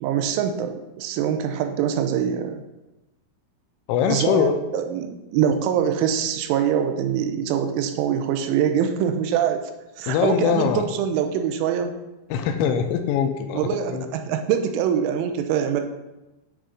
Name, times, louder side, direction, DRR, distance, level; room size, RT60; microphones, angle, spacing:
voice 1, 0.0-2.6 4.1-9.6 10.0-11.9 13.5-15.8, right 8 dB, 90° right, 6 dB, 3.1 m, -24 dB
voice 2, 3.9-4.5 10.1-10.8 12.3-14.1, left 8 dB, 85° left, 6 dB, 2.7 m, -22 dB
9.6 x 3.7 x 5.1 m, 1.0 s
omnidirectional pair, 5.6 m